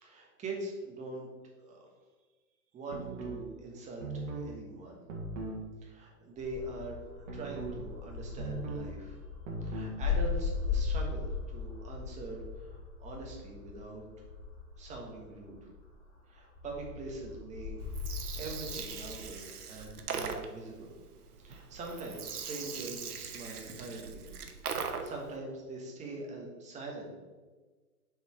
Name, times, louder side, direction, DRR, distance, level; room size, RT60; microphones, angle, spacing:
voice 1, 0.0-1.3 1.6-1.9 2.7-5.0 5.8-9.2 9.6-14.0 14.8-15.7 16.3-17.7 18.3-20.9 21.4-24.2 24.7-27.1, right 2 dB, 15° right, 0 dB, 1.2 m, -43 dB
sound 1, 2.9-3.4 4.0-4.5 5.1-5.6 7.3-7.8 8.4-8.9 9.5-10.0, right 2 dB, 55° right, 1.8 m, -38 dB
sound 2, 6.4-16.1 16.5-19.4, left 5 dB, 15° left, 1.5 m, -38 dB
Gurgling, 17.8-25.3, right 6 dB, 80° right, 1.0 m, -40 dB
6.9 x 4.2 x 4.7 m, 1.3 s
hypercardioid pair, 135°, 45 cm